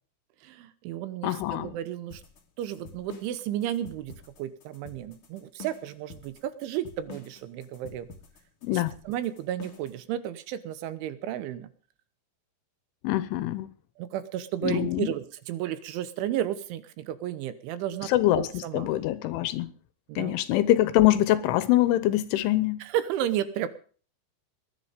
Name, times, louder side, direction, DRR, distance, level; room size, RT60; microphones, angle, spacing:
voice 1, 0.4-2.2 2.6-8.1 8.7-11.7 14.0-18.9 20.1-20.4 22.8-23.7, right 11 dB, 75° right, 3.2 m, -33 dB
voice 2, 1.2-1.7 8.6-8.9 13.0-13.7 14.6-15.1 18.1-19.7 20.2-22.8, left 14 dB, 80° left, 3.1 m, -24 dB
sound 1, 2.1-10.0, left 4 dB, 50° left, 1.6 m, -47 dB
20.5 x 10.5 x 5.1 m
omnidirectional pair, 5.9 m